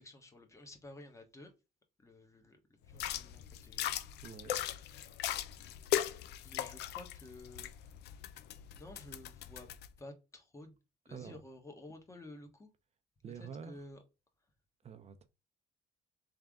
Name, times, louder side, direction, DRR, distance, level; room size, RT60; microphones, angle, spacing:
voice 1, 0.0-1.5 2.0-2.6 2.9-3.9 6.4-7.7 8.7-9.7 10.0-10.8 11.1-12.7 13.4-14.0, left 2 dB, 20° left, 1.3 m, -52 dB
sound 1, 2.9-9.9, left 11 dB, 80° left, 0.5 m, -39 dB
voice 2, 4.2-4.5 11.1-11.4 13.2-13.8 14.8-15.3, right 7 dB, 40° right, 0.6 m, -47 dB
3.6 x 3.4 x 3.5 m
cardioid pair, 110°, 17 cm